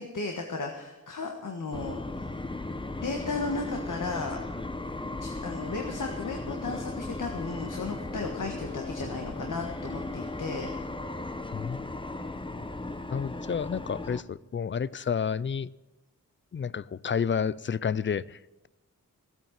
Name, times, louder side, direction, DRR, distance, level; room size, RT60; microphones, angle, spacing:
voice 1, 0.0-2.0 3.0-4.4 5.2-10.7, left 3 dB, 65° left, 1.7 m, -35 dB
sound 1, 1.7-14.2, left 2 dB, 15° left, 0.8 m, -36 dB
voice 2, 11.5-11.9 13.1-15.7 16.5-18.4, left 7 dB, 35° left, 0.4 m, -30 dB
16.0 x 9.0 x 7.3 m
wide cardioid pair, 100°, 33 cm